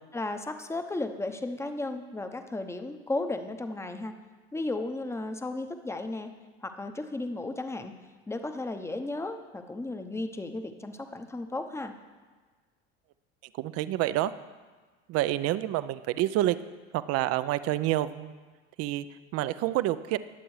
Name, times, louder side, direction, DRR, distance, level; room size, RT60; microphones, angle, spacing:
voice 1, 0.1-4.1 4.5-6.3 6.6-7.9 8.3-11.9, left 2 dB, 10° left, 7 dB, 0.9 m, -34 dB
voice 2, 13.5-14.3 15.1-16.6 16.9-18.3 18.8-19.1 19.3-20.2, right 14 dB, 50° right, 15 dB, 0.6 m, -28 dB
20.0 x 7.8 x 3.2 m, 1.4 s
hypercardioid pair, 80°, 32 cm